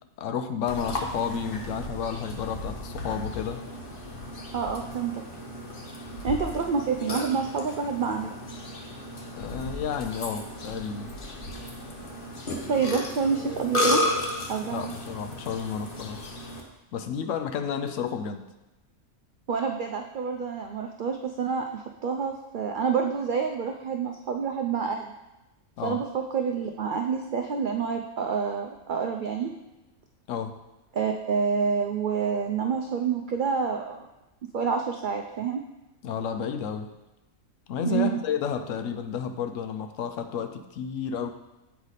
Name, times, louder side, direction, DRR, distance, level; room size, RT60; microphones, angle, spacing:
voice 1, 0.2-3.6 9.4-11.2 14.7-16.4 16.9-18.5 25.8-26.0 30.3-30.6 36.0-36.9 37.7-41.3, left 7 dB, 70° left, 8 dB, 0.9 m, -31 dB
Burping eructation, 0.7-16.6, left 1 dB, 45° left, 1.1 m, -34 dB
voice 2, 4.5-5.2 6.2-8.4 12.7-14.0 14.5-14.9 19.5-25.1 25.8-29.5 30.9-34.1 34.5-35.6 37.8-38.2, right 6 dB, 75° right, 4 dB, 0.4 m, -28 dB
8.1 x 4.9 x 4.1 m, 1.0 s
omnidirectional pair, 1.4 m